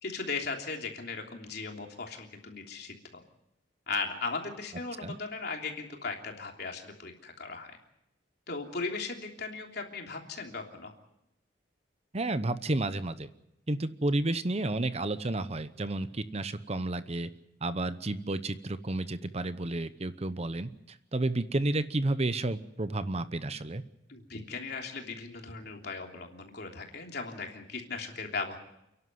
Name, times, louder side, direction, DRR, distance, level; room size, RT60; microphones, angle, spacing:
voice 1, 0.0-3.2 3.9-7.8 8.5-10.9 24.1-28.6, left 4 dB, 60° left, 2 dB, 3.2 m, -37 dB
voice 2, 12.1-13.3 13.7-17.3 17.6-23.8, right 2 dB, 35° right, 12 dB, 0.8 m, -31 dB
29.5 x 11.5 x 9.5 m, 0.84 s
head